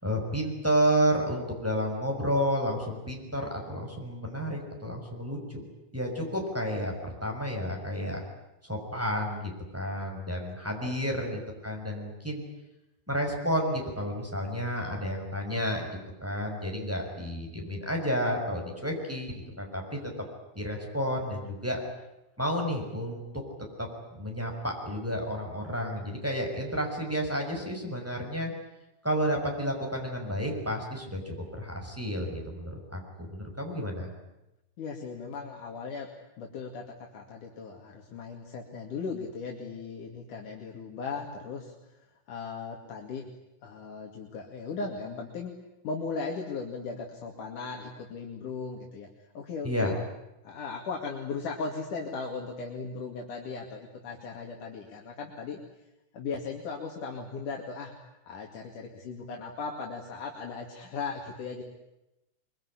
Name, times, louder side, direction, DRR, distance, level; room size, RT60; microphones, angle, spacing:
voice 1, 0.0-5.6 5.9-8.2 8.7-12.4 13.1-20.0 20.6-21.8 22.4-23.2 23.8-28.5 29.0-34.1 49.6-50.0, equal, 5° right, 0 dB, 5.8 m, -31 dB
voice 2, 10.8-11.3 34.8-36.1 36.4-41.7 42.3-43.3 43.6-45.6 45.8-49.9 50.4-55.6 56.1-61.6, left 4 dB, 80° left, 0 dB, 3.9 m, -37 dB
24.0 x 24.0 x 10.0 m, 0.92 s
omnidirectional pair, 3.6 m